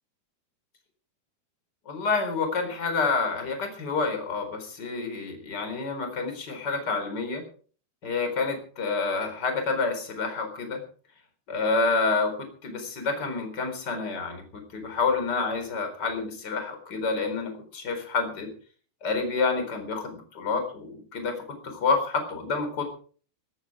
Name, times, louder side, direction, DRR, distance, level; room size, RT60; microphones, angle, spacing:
voice 1, 1.9-7.4 8.0-10.8 11.5-12.3 12.6-18.5 19.0-21.3 21.6-22.8, left 4 dB, 25° left, 6 dB, 4.3 m, -28 dB
17.0 x 14.5 x 5.0 m, 0.43 s
omnidirectional pair, 5.0 m